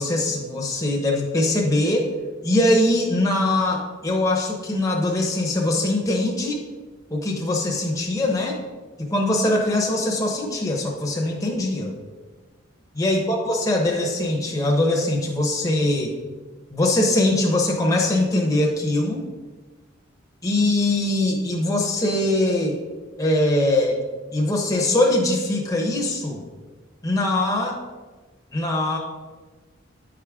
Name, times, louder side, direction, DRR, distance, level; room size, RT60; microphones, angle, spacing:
voice 1, 0.0-2.1 2.4-6.6 7.1-8.6 9.0-11.9 12.9-16.2 16.7-19.2 20.4-22.8 23.2-24.0 24.3-26.4 27.0-27.8 28.5-29.0, left 1 dB, 20° left, -1 dB, 0.9 m, -22 dB
9.6 x 4.9 x 3.6 m, 1.3 s
head